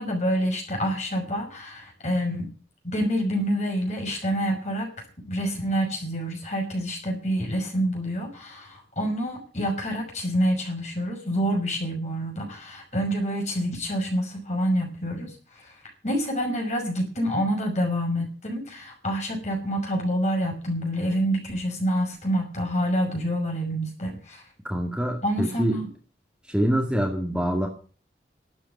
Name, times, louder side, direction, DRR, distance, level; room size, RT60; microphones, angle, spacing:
voice 1, 0.0-2.5 2.8-4.9 5.2-15.7 16.0-24.4 25.2-25.9, equal, 40° left, 1 dB, 5.8 m, -27 dB
voice 2, 24.7-25.8 26.5-27.7, equal, 5° right, 1 dB, 2.1 m, -25 dB
12.5 x 8.7 x 9.1 m, 0.39 s
head